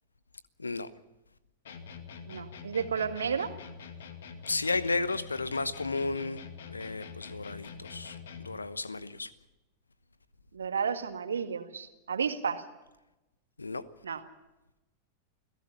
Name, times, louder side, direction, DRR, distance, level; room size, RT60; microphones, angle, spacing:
sound 1, 1.7-8.6, left 5 dB, 60° left, 2.1 m, -45 dB
voice 1, 2.3-3.5 10.5-12.6 14.0-14.2, right 6 dB, 70° right, 1.8 m, -32 dB
voice 2, 4.5-6.4 6.7-8.2 8.4-9.3 13.6-13.8, left 3 dB, 80° left, 1.0 m, -33 dB
29.5 x 17.0 x 5.8 m
figure-of-eight pair, 90°, 0 cm